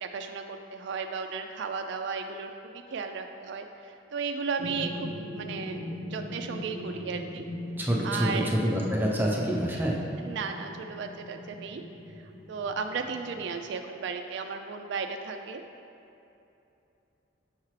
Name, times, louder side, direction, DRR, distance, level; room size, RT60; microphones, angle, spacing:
voice 1, 0.0-2.5 2.9-5.9 6.1-7.4 8.0-8.5 10.2-11.8 12.5-15.6, right 5 dB, 65° right, 5 dB, 0.4 m, -34 dB
sound 1, 4.6-13.7, left 1 dB, 40° left, 0.9 m, -40 dB
voice 2, 7.8-10.0, equal, 10° right, -4 dB, 0.7 m, -27 dB
6.5 x 5.9 x 3.2 m, 2.8 s
head